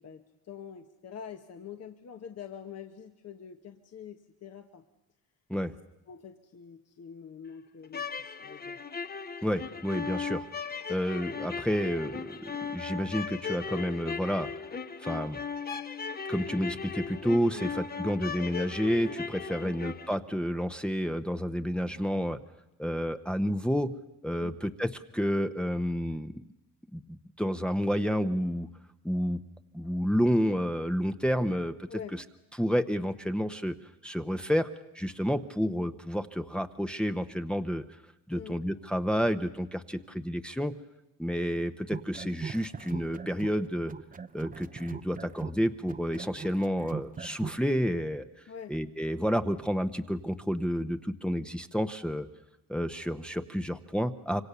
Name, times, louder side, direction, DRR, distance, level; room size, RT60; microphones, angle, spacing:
voice 1, 0.0-4.8 6.1-8.8 17.5-17.7 19.6-19.8 24.4-24.6 31.9-32.2 38.3-38.6 48.5-48.8, left 8 dB, 55° left, 6 dB, 1.4 m, -45 dB
Mournful fiddle, 7.8-20.1, left 5 dB, 30° left, 1.1 m, -37 dB
voice 2, 9.4-10.4 10.9-14.5 15.0-15.4 16.3-22.4 22.8-23.9 24.2-26.4 26.9-28.7 29.0-29.4 29.7-32.2 32.6-33.8 34.0-34.7 34.9-37.8 38.3-40.7 41.2-43.9 44.3-48.2 48.7-52.3 52.7-54.4, equal, 5° left, 7 dB, 0.9 m, -30 dB
sound 1, 41.8-43.6 43.9-47.6, right 5 dB, 25° right, 0.9 m, -40 dB
26.0 x 24.5 x 6.9 m, 1.0 s
cardioid pair, 90°, 30 cm